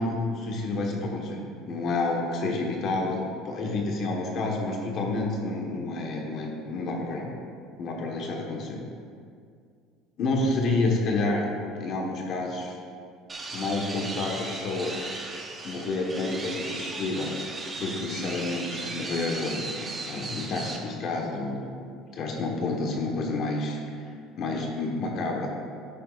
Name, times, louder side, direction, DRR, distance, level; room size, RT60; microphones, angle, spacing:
voice 1, 0.0-7.3 7.8-8.8 10.2-11.5 11.8-12.8 13.5-15.0 15.6-17.3 17.8-21.7 22.1-24.1 24.4-25.5, left 2 dB, 50° left, 0 dB, 1.2 m, -29 dB
sound 1, 13.3-20.8, right 3 dB, 20° right, 0.9 m, -36 dB
10.5 x 8.4 x 2.4 m, 2.2 s
cardioid pair, 135°, 0 cm